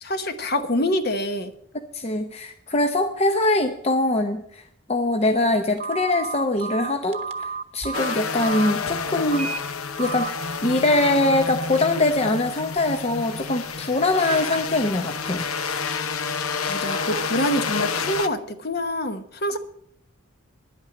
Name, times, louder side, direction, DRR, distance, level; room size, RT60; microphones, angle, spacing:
voice 1, 0.0-1.5 16.4-19.6, left 1 dB, 50° left, 9 dB, 1.1 m, -26 dB
voice 2, 1.9-4.6 4.9-9.5 10.0-10.3 10.6-15.5, left 2 dB, 30° left, 5 dB, 0.7 m, -23 dB
Telephone, 5.8-8.7 9.3-9.6 10.0-10.3, right 5 dB, 30° right, 0.9 m, -31 dB
sound 1, 7.9-18.3, left 5 dB, 85° left, 0.8 m, -29 dB
11.0 x 8.9 x 7.8 m, 0.71 s
head